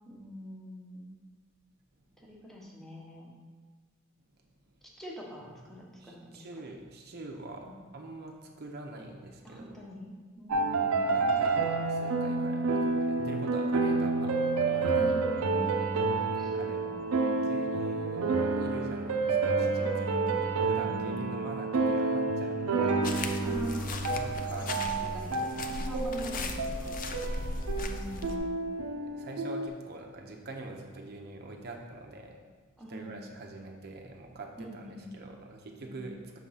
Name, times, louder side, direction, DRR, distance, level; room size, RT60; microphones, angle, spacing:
voice 1, 0.0-1.1 2.2-3.3 5.0-6.5 7.6-7.7 9.4-11.1 15.0-15.7 16.2-17.4 19.8-20.4 20.7-21.3 22.8-22.9 23.4-24.0 24.6-27.1 27.8-28.5 32.8-33.2 34.6-35.2 35.8-36.0, equal, ahead, -3 dB, 1.0 m, -43 dB
voice 2, 6.0-9.8 11.1-15.1 16.2-17.0 17.4-19.9 20.3-23.0 24.1-25.2 26.8-27.5 29.1-32.4 32.9-36.4, right 2 dB, 50° right, 2 dB, 0.7 m, -44 dB
sound 1, 10.5-29.7, right 3 dB, 85° right, 0.6 m, -29 dB
sound 2, 23.0-28.4, left 2 dB, 40° left, 0.4 m, -37 dB
6.2 x 3.7 x 5.6 m, 1.5 s
head